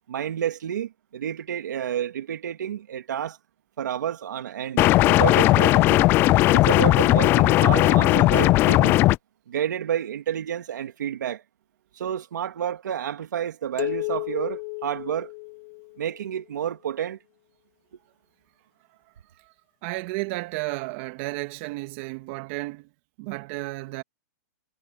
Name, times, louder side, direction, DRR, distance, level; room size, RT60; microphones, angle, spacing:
voice 1, 0.1-3.4 3.8-6.1 6.5-9.0 9.5-11.4 11.9-15.3 16.0-17.2, right 9 dB, 80° right, 2.2 m, -30 dB
sound 1, 4.8-9.2, left 17 dB, 20° left, 0.4 m, -17 dB
sound 2, 13.8-16.2, left 29 dB, 45° left, 1.9 m, -33 dB
voice 2, 19.8-22.9 23.2-24.0, right 22 dB, 40° right, 2.7 m, -32 dB
hypercardioid pair, 155°, 10 cm